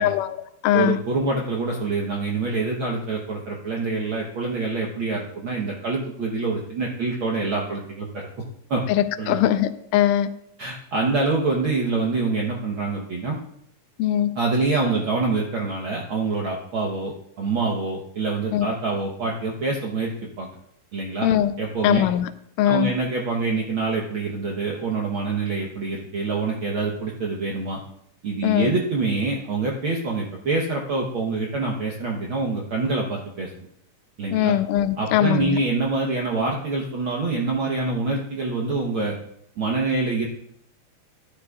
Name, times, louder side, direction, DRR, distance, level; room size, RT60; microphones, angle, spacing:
voice 1, 0.0-1.0 8.9-10.3 14.0-14.3 18.5-18.7 21.2-21.5 21.8-22.3 22.6-22.9 28.4-28.7 34.3-35.6, left 11 dB, 85° left, 12 dB, 2.1 m, -21 dB
voice 2, 0.7-8.3 8.7-8.8 9.2-9.4 10.6-13.4 14.4-20.5 20.9-21.3 21.6-22.0 22.6-27.8 28.2-33.5 34.2-34.5 35.0-39.2 39.6-40.3, right 3 dB, 70° right, -1 dB, 1.2 m, -25 dB
13.5 x 10.5 x 2.4 m, 0.73 s
omnidirectional pair, 3.7 m